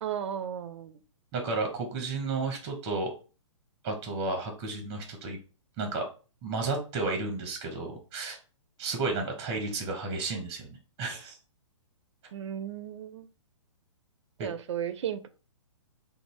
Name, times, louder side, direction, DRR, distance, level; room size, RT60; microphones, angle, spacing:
voice 1, 0.0-1.0 12.3-13.3 14.4-15.3, right 9 dB, 65° right, 0.4 m, -35 dB
voice 2, 1.3-3.1 3.8-5.4 5.8-6.1 6.4-8.4 8.8-11.4 14.4-14.5, right 3 dB, 30° right, 0.7 m, -32 dB
2.5 x 2.0 x 3.0 m
hypercardioid pair, 125°, 16 cm